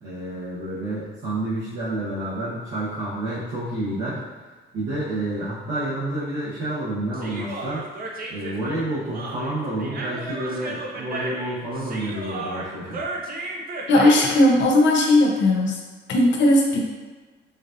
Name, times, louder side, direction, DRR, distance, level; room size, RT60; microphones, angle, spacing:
voice 1, 0.0-4.2 4.7-7.8 8.3-13.0, right 1 dB, 75° right, -12 dB, 1.3 m, -29 dB
Human voice, 7.1-14.5, right 2 dB, 45° right, 0.6 m, -34 dB
voice 2, 13.9-15.8 16.1-16.9, left 1 dB, 70° left, 0 dB, 0.7 m, -17 dB
5.1 x 2.5 x 2.6 m, 1.3 s
cardioid pair, 90°, 20 cm